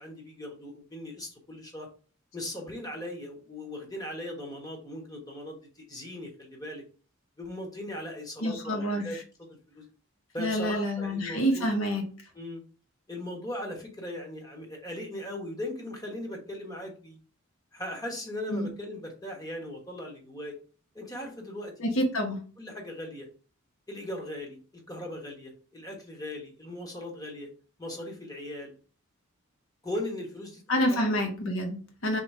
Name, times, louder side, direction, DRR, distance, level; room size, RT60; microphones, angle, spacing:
voice 1, 0.0-1.9 2.3-6.8 7.4-9.2 9.5-9.8 10.3-11.7 12.3-12.6 13.1-17.2 17.7-20.6 20.9-21.7 22.6-23.3 23.9-27.5 27.8-28.7 29.8-30.6 30.9-31.0 31.6-31.7, left 1 dB, 20° left, 0 dB, 1.2 m, -38 dB
voice 2, 8.4-9.2 10.4-12.0 18.5-18.7 21.8-22.4 30.7-32.2, equal, 70° left, 2 dB, 1.2 m, -28 dB
3.7 x 2.9 x 4.8 m, 0.39 s
head